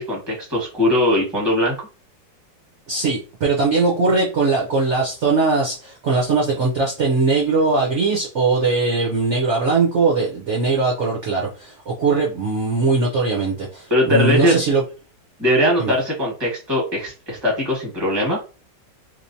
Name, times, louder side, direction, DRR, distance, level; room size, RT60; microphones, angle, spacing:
voice 1, 0.0-1.7 13.9-14.6 15.4-18.4, left 1 dB, 15° right, -2 dB, 1.2 m, -20 dB
voice 2, 2.9-14.8 15.8-15.9, right 3 dB, 55° right, -2 dB, 0.8 m, -20 dB
3.3 x 3.0 x 2.7 m, 0.34 s
omnidirectional pair, 2.0 m